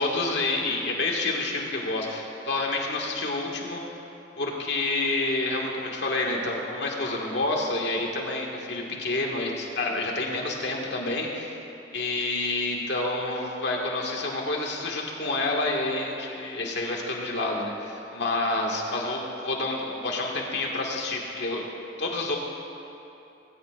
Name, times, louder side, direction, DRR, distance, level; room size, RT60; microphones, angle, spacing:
voice 1, 0.0-4.0 4.4-11.6 11.9-21.7 22.0-22.4, left 2 dB, 65° left, -1 dB, 1.9 m, -28 dB
19.5 x 17.5 x 2.5 m, 2.9 s
head